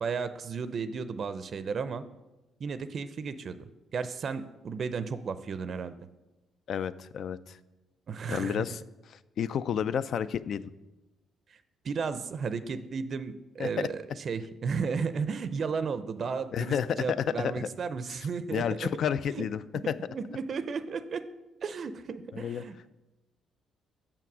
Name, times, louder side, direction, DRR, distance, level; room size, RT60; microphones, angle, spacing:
voice 1, 0.0-2.0 2.6-3.6 3.9-6.0 8.1-8.7 11.5-11.6 11.8-18.9 19.3-19.5 20.1-21.2 21.6-22.7, right 5 dB, 50° right, 12 dB, 0.4 m, -34 dB
voice 2, 6.7-7.6 8.3-8.8 9.4-10.7 13.6-13.7 16.5-17.7 18.5-19.9 22.3-22.6, left 8 dB, 65° left, 15 dB, 0.3 m, -30 dB
6.8 x 5.8 x 6.1 m, 1.0 s
cardioid pair, 90°, 0 cm